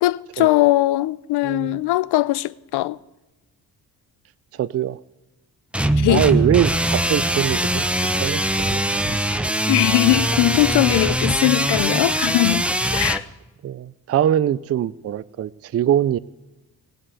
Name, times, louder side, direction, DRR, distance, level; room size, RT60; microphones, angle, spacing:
voice 1, 0.0-3.0 6.0-6.4 9.7-13.2, left 17 dB, 70° left, 0.6 m, -20 dB
voice 2, 1.4-1.8 4.5-5.0 6.1-7.8 8.2-9.2 13.6-16.2, right 10 dB, 35° right, 0.5 m, -22 dB
sound 1, 5.7-13.2, right 1 dB, 5° right, 0.7 m, -22 dB
17.0 x 7.7 x 8.3 m
supercardioid pair, 55°, 40 cm